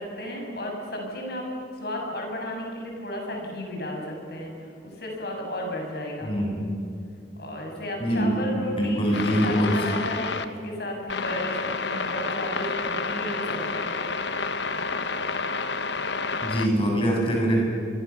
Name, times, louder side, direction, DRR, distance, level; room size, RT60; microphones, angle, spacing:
voice 1, 0.0-1.5 1.7-6.3 7.4-13.9, left 1 dB, 55° left, 0 dB, 7.3 m, -33 dB
voice 2, 6.2-6.6 8.0-8.3 8.8-9.9 16.4-17.6, equal, 30° left, -2 dB, 7.6 m, -23 dB
sound 1, 9.1-10.5 11.1-16.7, left 4 dB, 70° left, 1.4 m, -29 dB
26.5 x 24.5 x 7.1 m, 2.6 s
head